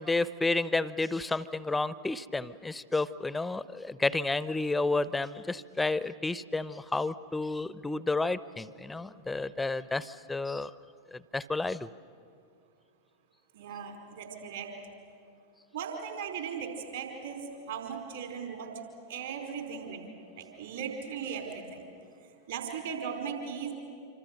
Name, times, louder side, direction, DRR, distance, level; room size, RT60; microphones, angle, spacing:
voice 1, 0.0-10.7 11.1-11.9, left 3 dB, 10° left, 17 dB, 0.7 m, -31 dB
voice 2, 13.5-14.7 15.7-18.7 19.1-21.8 22.5-23.7, right 6 dB, 60° right, 2 dB, 4.6 m, -38 dB
26.5 x 26.0 x 6.8 m, 2.4 s
figure-of-eight pair, 90°, 0 cm